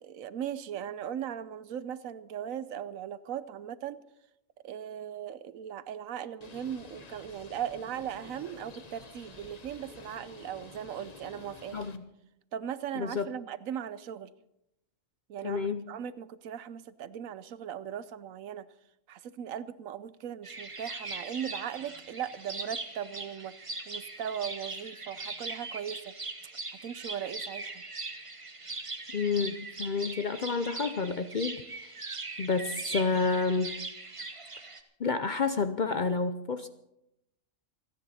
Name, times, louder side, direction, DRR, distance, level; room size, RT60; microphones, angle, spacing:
voice 1, 0.0-4.0 4.6-11.8 12.5-14.3 15.3-18.7 19.1-23.6 23.9-26.1 26.7-27.8, right 9 dB, 80° right, 16 dB, 1.1 m, -38 dB
Bird, 6.4-12.0, left 3 dB, 35° left, 1.0 m, -50 dB
voice 2, 11.7-12.1 12.9-13.3 15.4-15.9 29.1-31.6 32.4-33.8 35.0-36.7, left 4 dB, 50° left, 10 dB, 0.6 m, -29 dB
sound 1, 20.4-34.8, right 3 dB, 25° right, 1.1 m, -40 dB
28.0 x 9.9 x 4.2 m, 0.84 s
omnidirectional pair, 1.4 m